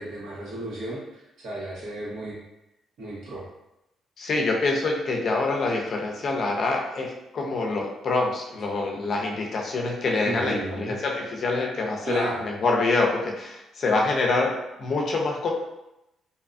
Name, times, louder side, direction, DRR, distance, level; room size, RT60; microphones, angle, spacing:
voice 1, 0.0-2.4 3.0-3.4 10.2-11.0 12.0-12.4, right 2 dB, 75° right, -7 dB, 1.2 m, -33 dB
voice 2, 4.2-15.5, left 3 dB, 55° left, 0 dB, 0.5 m, -26 dB
2.7 x 2.3 x 2.5 m, 0.89 s
cardioid pair, 90°, 0 cm